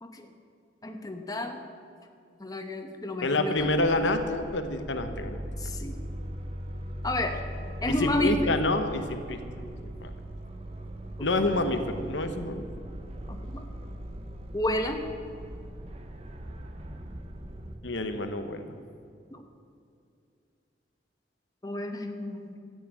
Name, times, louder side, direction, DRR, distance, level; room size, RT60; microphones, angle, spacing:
voice 1, 0.8-1.6 2.4-3.8 5.6-6.0 7.0-7.4 7.8-8.5 11.2-11.3 13.3-13.6 14.5-15.0 19.3-19.4 21.6-22.5, left 1 dB, 20° left, 4 dB, 1.0 m, -31 dB
voice 2, 3.2-5.4 5.6-5.7 8.0-9.4 10.0-10.1 11.2-12.6 17.8-18.7, left 2 dB, 85° left, 7 dB, 1.0 m, -28 dB
sound 1, 3.6-17.8, equal, 35° right, 0.9 m, -39 dB
12.5 x 8.5 x 8.8 m, 2.4 s
head